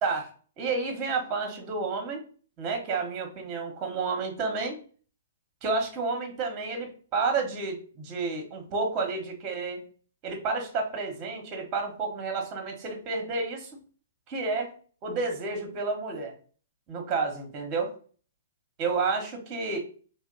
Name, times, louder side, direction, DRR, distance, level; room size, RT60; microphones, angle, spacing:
voice 1, 0.6-2.2 2.6-4.8 5.6-9.8 10.2-13.7 14.3-14.7 15.0-16.3 16.9-17.9 18.8-19.8, right 4 dB, 30° right, 3 dB, 1.0 m, -30 dB
2.8 x 2.1 x 3.8 m, 0.41 s
hypercardioid pair, 125°, 0 cm